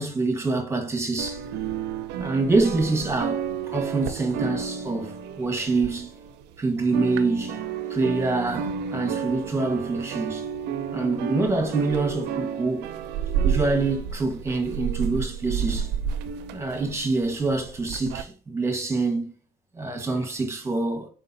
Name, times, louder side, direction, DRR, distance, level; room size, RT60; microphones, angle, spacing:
voice 1, 0.0-1.4 2.2-6.1 6.6-7.6 7.9-10.5 10.9-12.9 13.4-15.9 16.5-19.3 19.7-21.1, right 3 dB, 15° right, 1.3 m, -26 dB
sound 1, 1.2-6.5 6.8-18.2, right 7 dB, 90° right, 0.5 m, -31 dB
4.7 x 3.8 x 2.7 m
cardioid pair, 110°, 17 cm